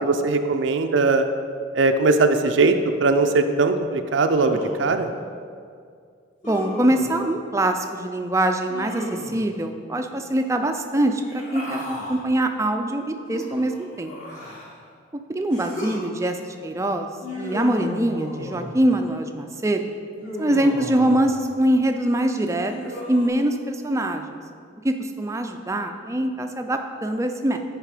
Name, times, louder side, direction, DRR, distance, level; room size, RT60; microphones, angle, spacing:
voice 1, 0.0-1.3 1.7-5.1, right 3 dB, 70° right, 6 dB, 0.5 m, -20 dB
Human voice, 4.2-5.0 6.4-7.1 8.7-9.5 11.1-12.2 13.3-14.8 15.5-16.0 17.2-18.8 20.2-21.4 22.4-23.3, left 1 dB, 40° left, 1.8 m, -34 dB
voice 2, 6.4-14.1 15.3-17.1 17.4-19.8 20.4-22.7 23.1-24.2 24.8-27.6, right 1 dB, 15° right, 5 dB, 0.4 m, -23 dB
10.0 x 4.9 x 4.9 m, 2.2 s
head